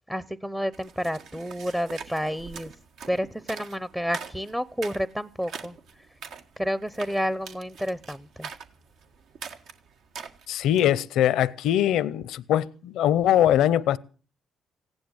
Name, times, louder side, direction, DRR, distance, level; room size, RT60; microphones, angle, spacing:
voice 1, 0.1-2.7 3.1-5.7 6.6-8.5, equal, 10° right, 0.7 m, -30 dB
sound 1, 0.7-11.0, right 6 dB, 80° right, 1.7 m, -43 dB
voice 2, 10.5-14.0, left 11 dB, 85° left, 0.7 m, -22 dB
16.0 x 10.5 x 8.0 m
cardioid pair, 90°, 0 cm